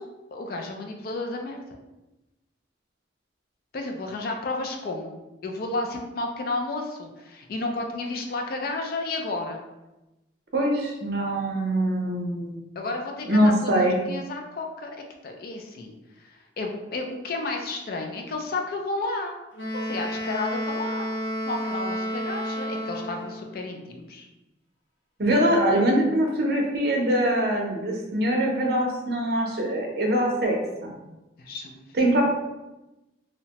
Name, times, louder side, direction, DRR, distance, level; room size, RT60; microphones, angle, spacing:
voice 1, 0.3-1.8 3.7-9.6 12.8-15.0 15.2-19.4 19.7-21.1 21.5-24.3 31.4-31.8, left 2 dB, 50° left, 3 dB, 0.4 m, -32 dB
voice 2, 10.5-12.6 13.2-14.0 25.2-30.9 32.0-32.2, right 1 dB, 60° right, 0 dB, 0.6 m, -23 dB
Wind instrument woodwind instrument, 19.5-23.5, equal, 80° left, 0.8 m, -31 dB
2.7 x 2.1 x 2.8 m, 1.0 s
head